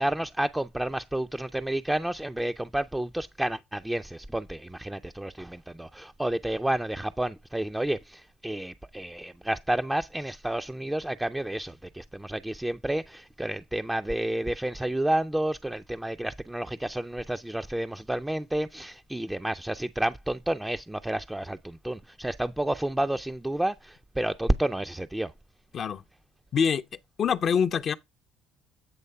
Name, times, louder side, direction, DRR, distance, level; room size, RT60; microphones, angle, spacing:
voice 1, 0.0-25.3, right 1 dB, 10° right, 0.4 m, -30 dB
voice 2, 26.5-26.8 27.2-27.9, left 7 dB, 55° left, 0.5 m, -24 dB
8.7 x 3.1 x 5.6 m
supercardioid pair, 65°, 0 cm